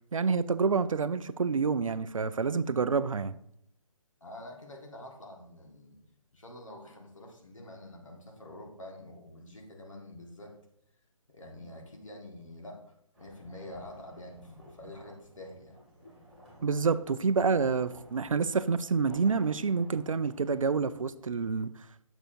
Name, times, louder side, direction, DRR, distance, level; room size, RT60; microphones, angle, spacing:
voice 1, 0.1-3.4 16.6-21.7, right 5 dB, 70° right, 15 dB, 0.4 m, -28 dB
voice 2, 4.2-6.0 6.3-10.5 11.3-15.8, left 1 dB, 65° left, 0 dB, 1.7 m, -47 dB
sound 1, 13.1-21.7, equal, ahead, 2.6 m, -53 dB
6.9 x 6.0 x 2.7 m, 0.73 s
figure-of-eight pair, 140°, 17 cm